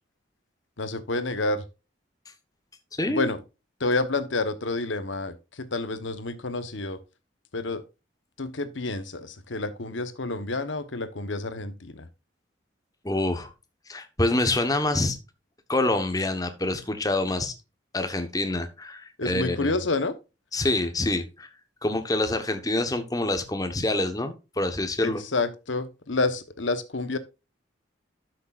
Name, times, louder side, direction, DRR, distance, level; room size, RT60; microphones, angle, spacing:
voice 1, 0.8-1.6 3.1-3.4 3.8-7.0 7.5-7.8 8.4-12.1 19.2-20.1 25.0-27.2, left 3 dB, 80° left, 1.1 m, -29 dB
voice 2, 13.0-13.5 13.9-15.2 15.7-17.5 17.9-19.7 20.5-21.5 21.8-25.2, left 2 dB, 20° left, 1.1 m, -26 dB
12.5 x 6.5 x 2.5 m
head